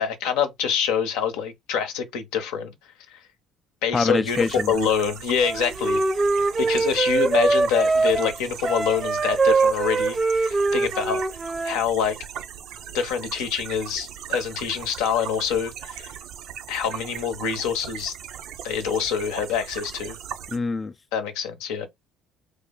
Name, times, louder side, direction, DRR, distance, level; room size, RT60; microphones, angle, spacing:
voice 1, 0.0-2.7 3.1-3.2 3.8-6.0 6.3-11.2 11.6-12.2 12.9-16.1 16.7-18.1 18.6-20.2 21.1-21.9, left 7 dB, 80° left, 0.7 m, -26 dB
voice 2, 3.9-4.8 20.5-20.9, left 4 dB, 30° left, 0.3 m, -24 dB
sound 1, 4.3-20.6, right 9 dB, 70° right, 0.6 m, -38 dB
Wind instrument woodwind instrument, 5.4-11.8, right 3 dB, 30° right, 0.6 m, -22 dB
3.3 x 2.1 x 3.6 m
supercardioid pair, 70°, 0 cm